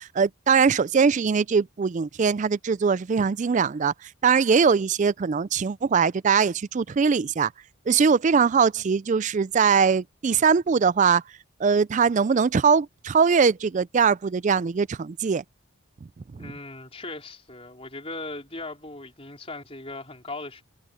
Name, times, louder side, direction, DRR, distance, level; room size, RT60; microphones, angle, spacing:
voice 1, 0.0-3.9 4.2-7.5 7.9-11.2 11.6-15.4 16.3-16.5, right 6 dB, 35° right, 0.3 m, -21 dB
voice 2, 16.4-20.6, left 2 dB, 25° left, 4.5 m, -38 dB
head